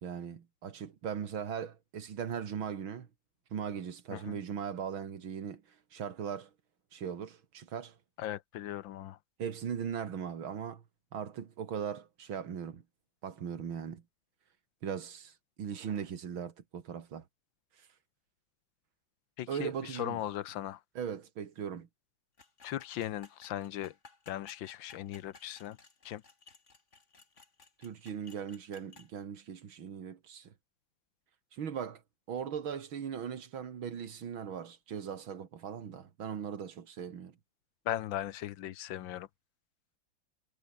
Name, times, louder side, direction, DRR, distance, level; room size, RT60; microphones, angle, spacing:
voice 1, 0.0-3.1 3.5-5.6 5.9-6.5 6.9-8.0 9.4-10.8 11.1-12.8 13.2-14.0 14.8-17.2 19.5-20.2 21.0-21.9 27.8-30.5 31.5-32.0 32.3-37.3, right 7 dB, 90° right, 2.7 m, -39 dB
voice 2, 8.2-9.2 19.4-20.8 22.6-23.9 24.3-25.8 26.0-26.2 37.9-39.3, left 12 dB, 75° left, 1.6 m, -38 dB
sound 1, 22.4-29.1, left 4 dB, 35° left, 2.9 m, -58 dB
omnidirectional pair, 2.1 m